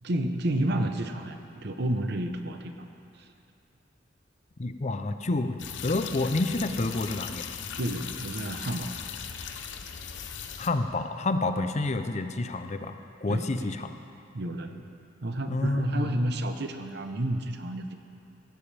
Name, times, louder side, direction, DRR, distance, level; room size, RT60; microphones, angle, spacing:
voice 1, 0.0-2.7 7.8-8.9 13.3-13.7 14.3-14.9 15.2-18.0, right 1 dB, 60° right, 6 dB, 0.9 m, -30 dB
voice 2, 4.6-7.4 10.6-12.9 13.2-13.9 15.5-16.1, left 2 dB, 35° left, 8 dB, 0.6 m, -29 dB
sound 1, 5.6-10.7, left 7 dB, 70° left, 0.8 m, -38 dB
16.5 x 16.0 x 3.4 m, 2.6 s
head